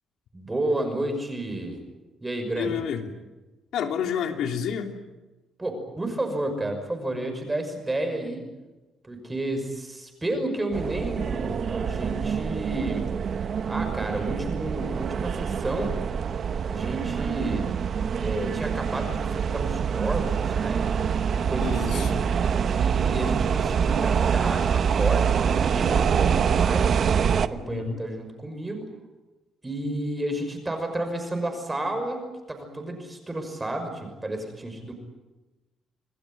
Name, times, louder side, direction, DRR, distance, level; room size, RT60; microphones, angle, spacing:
voice 1, 0.3-1.8 2.2-2.8 5.6-8.4 9.0-13.1 13.7-16.0 16.6-17.6 18.2-22.1 22.6-28.8 29.6-34.9, right 1 dB, 15° right, 6 dB, 5.9 m, -31 dB
voice 2, 2.6-3.1 3.7-4.9 21.6-22.2 27.7-28.0, left 7 dB, 75° left, 4 dB, 3.2 m, -29 dB
sound 1, 10.7-27.5, right 7 dB, 45° right, 0.9 m, -25 dB
27.5 x 20.0 x 9.3 m, 1.1 s
cardioid pair, 140°, 0 cm